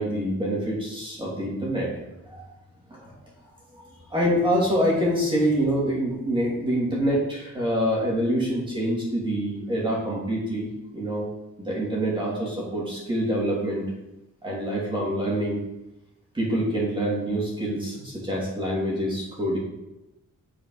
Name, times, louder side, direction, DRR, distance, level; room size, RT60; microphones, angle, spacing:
voice 1, 0.0-1.9 2.3-2.5 2.9-3.1 3.7-3.8 4.1-11.3 11.6-13.8 14.4-15.6 16.3-19.6, equal, 15° right, -5 dB, 2.8 m, -26 dB
8.8 x 5.1 x 4.9 m, 0.93 s
wide cardioid pair, 155°, 31 cm